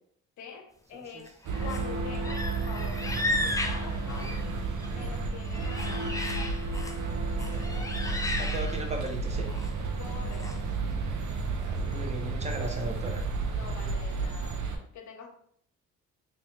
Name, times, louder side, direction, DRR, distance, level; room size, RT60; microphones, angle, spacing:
voice 1, 0.4-4.4 4.9-6.2 10.0-10.7 13.4-15.3, left 5 dB, 70° left, 4 dB, 0.8 m, -45 dB
sound 1, 1.3-1.9 2.1-4.9 5.3-7.0 7.4-9.1 9.4-9.7 10.3-10.6, left 2 dB, 10° left, 0.4 m, -35 dB
sound 2, 1.4-14.8, right 3 dB, 70° right, 0.8 m, -32 dB
voice 2, 7.5-9.5 11.5-13.2, right 2 dB, 20° right, 2 dB, 0.9 m, -38 dB
3.5 x 2.9 x 3.1 m, 0.63 s
cardioid pair, 90°, 30 cm